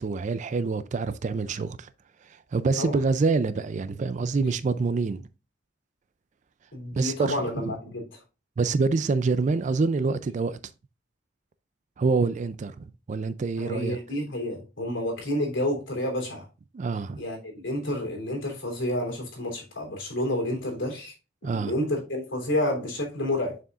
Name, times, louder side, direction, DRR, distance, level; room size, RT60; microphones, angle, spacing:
voice 1, 0.0-1.9 2.5-5.2 6.9-7.7 8.6-10.6 12.0-14.0 16.7-17.2 21.4-21.7, right 4 dB, 40° right, 0.3 m, -26 dB
voice 2, 6.7-8.2 13.6-16.4 17.2-21.1 21.4-23.6, left 1 dB, 75° left, 3.2 m, -29 dB
6.9 x 6.2 x 2.4 m
head